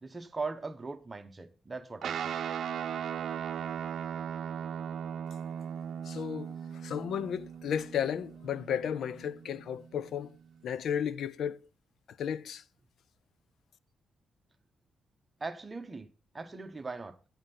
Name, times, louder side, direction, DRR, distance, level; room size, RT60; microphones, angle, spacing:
voice 1, 0.0-2.4 15.4-16.1 16.3-17.1, right 3 dB, 20° right, 0.9 m, -39 dB
Guitar, 2.0-10.8, right 8 dB, 65° right, 0.6 m, -38 dB
voice 2, 6.0-10.3 10.6-11.6 12.2-12.6, left 8 dB, 70° left, 0.4 m, -34 dB
11.0 x 9.0 x 4.2 m
wide cardioid pair, 175°, 0 cm